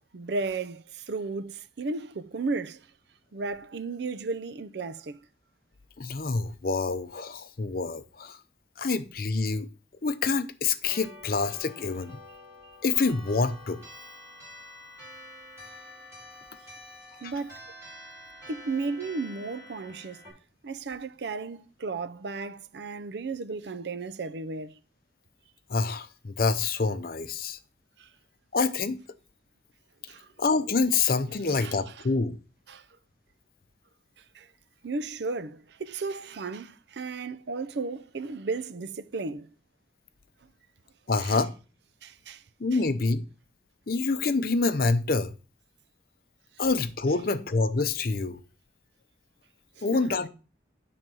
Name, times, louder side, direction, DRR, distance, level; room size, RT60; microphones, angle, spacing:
voice 1, 0.1-2.9 3.3-5.2 12.6-12.8 17.2-17.6 18.5-20.2 20.6-24.8 28.0-28.1 30.1-30.3 31.6-32.1 32.7-32.8 34.3-34.5 34.8-39.5 41.2-41.4 42.0-42.4 42.7-42.8 49.8-50.2, right 3 dB, 70° right, 0.5 m, -34 dB
voice 2, 6.0-8.4 8.8-9.7 10.0-12.2 12.8-13.8 17.2-17.3 25.7-27.6 28.5-29.0 30.4-32.3 41.1-41.5 42.6-43.2 43.9-45.3 46.6-48.4 49.8-50.3, left 4 dB, 50° left, 0.6 m, -26 dB
sound 1, 10.9-20.3, left 1 dB, 15° right, 5.6 m, -47 dB
8.9 x 3.9 x 6.1 m
head